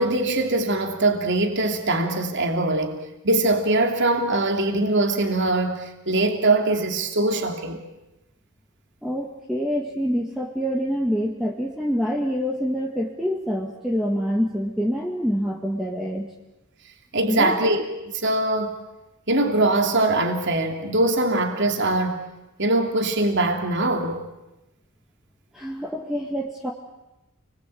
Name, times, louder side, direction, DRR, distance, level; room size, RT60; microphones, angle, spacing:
voice 1, 0.0-7.8 17.1-17.8 18.1-18.7 19.3-22.2 22.6-24.3, right 2 dB, 55° right, 3.0 m, -22 dB
voice 2, 9.0-16.3 17.3-17.5 25.5-26.7, equal, ahead, 2.1 m, -26 dB
29.5 x 21.5 x 8.8 m
head